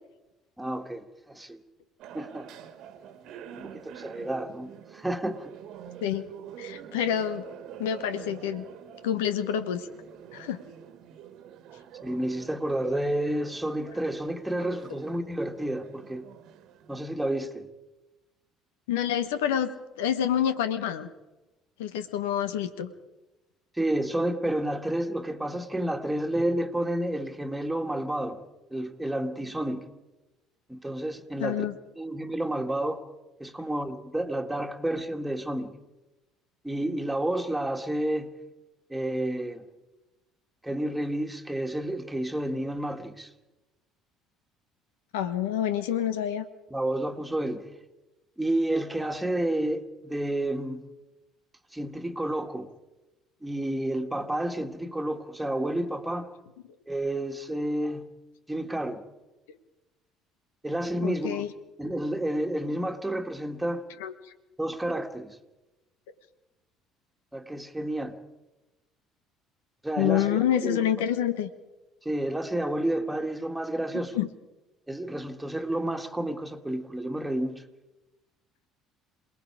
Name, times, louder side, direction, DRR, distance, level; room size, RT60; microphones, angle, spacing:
voice 1, 0.6-1.6 2.1-2.5 3.5-5.5 12.0-16.3 16.9-17.7 23.7-28.4 28.7-29.8 30.7-31.7 32.0-33.0 33.4-35.7 36.6-38.4 38.9-39.6 40.6-43.3 46.7-47.6 48.4-50.8 51.7-52.7 53.4-56.3 56.9-58.1 58.5-59.0 60.6-61.5 61.8-63.8 64.6-65.4 67.3-68.2 69.8-70.9 72.0-74.2 74.9-77.6, right 1 dB, 10° right, 2.2 m, -30 dB
sound 1, 2.0-17.0, right 9 dB, 60° right, 1.6 m, -47 dB
voice 2, 6.6-7.4 7.8-8.6 9.0-9.9 10.3-10.6 18.9-19.7 20.0-21.1 21.8-22.9 31.4-31.7 45.1-46.4 61.0-61.5 64.0-64.1 70.0-71.5 74.1-74.3, left 10 dB, 75° left, 1.2 m, -27 dB
27.5 x 19.5 x 5.0 m
hypercardioid pair, 55°, 0 cm